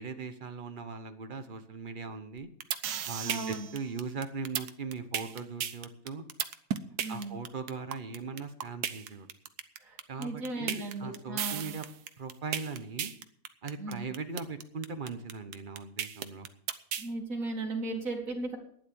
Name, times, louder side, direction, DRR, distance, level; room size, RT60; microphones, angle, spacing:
voice 1, 0.0-2.5 3.1-6.2 7.1-9.3 10.1-11.8 12.2-13.1 13.6-16.5, right 4 dB, 35° right, 9 dB, 1.3 m, -39 dB
sound 1, 2.4-17.1, right 9 dB, 90° right, 1.5 m, -34 dB
voice 2, 3.3-3.7 7.0-7.4 9.8-11.7 13.8-14.1 17.0-18.6, right 2 dB, 60° right, -2 dB, 3.2 m, -36 dB
12.0 x 10.0 x 7.1 m, 0.63 s
omnidirectional pair, 1.6 m